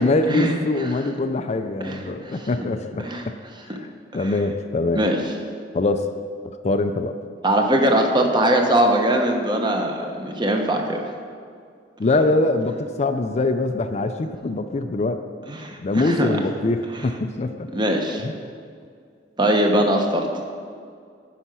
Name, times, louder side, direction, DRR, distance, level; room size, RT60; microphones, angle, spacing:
voice 1, 0.0-3.1 3.7-5.0 5.7-6.1 6.4-7.2 12.0-15.2 15.6-17.7 18.2-18.3, left 2 dB, 35° left, 8 dB, 0.4 m, -23 dB
voice 2, 7.4-11.0 15.5-16.3 17.7-18.2 19.4-20.3, right 1 dB, 25° right, 2 dB, 1.0 m, -21 dB
9.8 x 5.7 x 6.1 m, 2.2 s
head